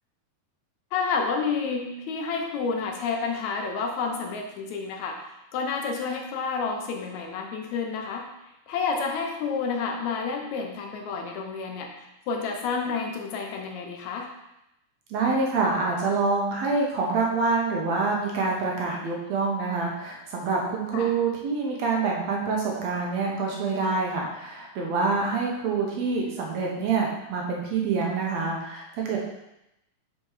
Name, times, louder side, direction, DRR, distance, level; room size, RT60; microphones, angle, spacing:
voice 1, 0.9-5.2 5.5-8.3 8.7-14.3 20.9-21.1, left 5 dB, 75° left, 2 dB, 2.0 m, -30 dB
voice 2, 15.1-29.2, right 4 dB, 65° right, -1 dB, 2.1 m, -26 dB
6.3 x 4.3 x 4.8 m, 0.88 s
omnidirectional pair, 3.5 m